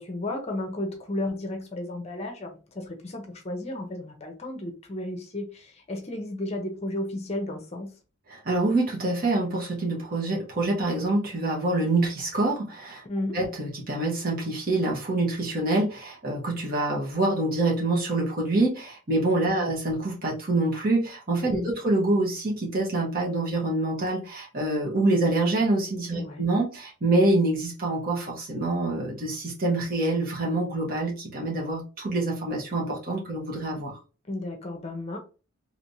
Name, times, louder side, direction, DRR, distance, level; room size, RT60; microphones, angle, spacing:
voice 1, 0.0-7.9 13.1-13.4 19.5-19.7 21.5-21.8 26.1-26.4 34.3-35.2, left 1 dB, 30° left, 0.7 m, -33 dB
voice 2, 8.3-13.0 13.3-34.0, right 2 dB, 45° right, 1.1 m, -26 dB
3.3 x 3.0 x 2.7 m
head